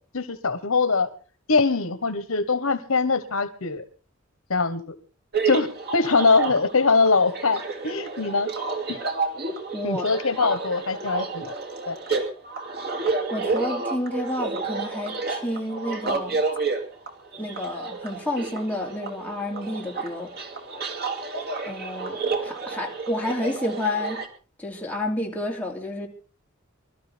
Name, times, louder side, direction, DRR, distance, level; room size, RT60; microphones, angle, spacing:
voice 1, 0.1-1.1 1.5-3.8 4.5-4.8 5.4-5.7 5.9-8.5 8.9-9.0 9.8-11.5 11.9-12.0, left 4 dB, 80° left, 11 dB, 1.4 m, -22 dB
sound 1, 5.3-24.3, right 4 dB, 50° right, 2.6 m, -30 dB
voice 2, 9.7-10.6 13.3-16.4 17.4-20.3 21.6-24.2 24.6-26.1, left 1 dB, 10° left, -1 dB, 2.9 m, -30 dB
25.5 x 13.0 x 3.5 m, 0.37 s
head